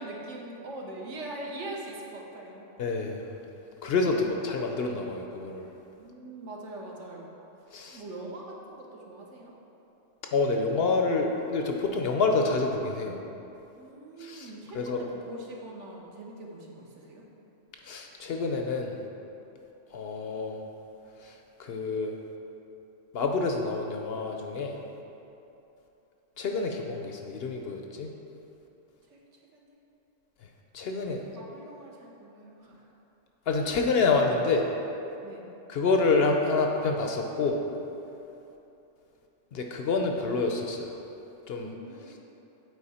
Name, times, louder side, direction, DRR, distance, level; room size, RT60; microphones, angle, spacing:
voice 1, 0.0-2.6 6.0-7.4 7.9-9.5 13.8-17.2 29.1-29.8 31.3-32.8 35.2-35.5 41.6-42.2, right 1 dB, 65° right, -2 dB, 1.2 m, -42 dB
voice 2, 2.8-3.2 3.8-5.6 7.7-8.0 10.3-13.2 14.2-15.0 17.8-18.9 19.9-20.6 21.2-21.3 21.6-22.1 23.1-24.8 26.4-28.1 30.7-31.2 33.5-34.6 35.7-37.6 39.5-40.9 41.5-41.7, left 3 dB, 65° left, 2 dB, 0.7 m, -27 dB
8.2 x 4.5 x 4.2 m, 2.9 s
omnidirectional pair, 1.4 m